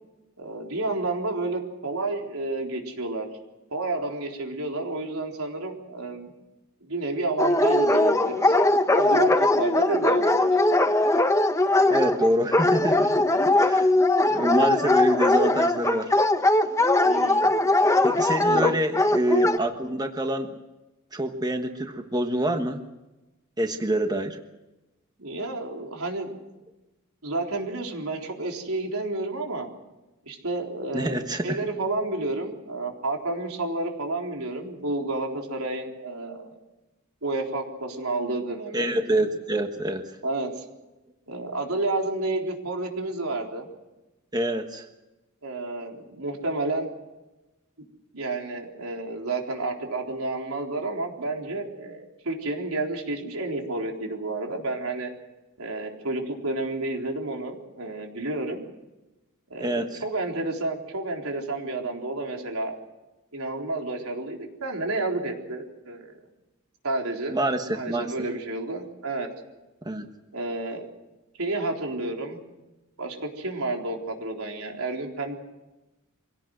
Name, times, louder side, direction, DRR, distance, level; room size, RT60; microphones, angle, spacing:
voice 1, 0.4-3.3 3.7-6.3 6.8-8.6 9.0-10.6 17.0-17.5 18.4-18.8 25.2-26.3 27.2-29.7 30.3-36.6 37.2-38.9 40.2-40.6 41.3-43.7 45.4-46.9 48.1-55.1 55.6-58.6 59.5-62.8 63.3-66.1 66.8-67.4 67.8-69.3 70.3-70.8 71.4-72.4 73.0-75.3, right 2 dB, 90° right, 2 dB, 4.0 m, -30 dB
Dog, 7.4-19.6, left 2 dB, 15° left, 1.0 m, -20 dB
voice 2, 11.9-13.9 14.3-16.2 18.0-20.5 21.1-22.9 23.6-24.4 30.9-31.6 38.7-40.2 44.3-44.9 59.6-60.0 67.3-68.1 69.8-70.1, right 1 dB, 20° right, 6 dB, 1.3 m, -26 dB
24.5 x 17.5 x 7.8 m, 1.0 s
head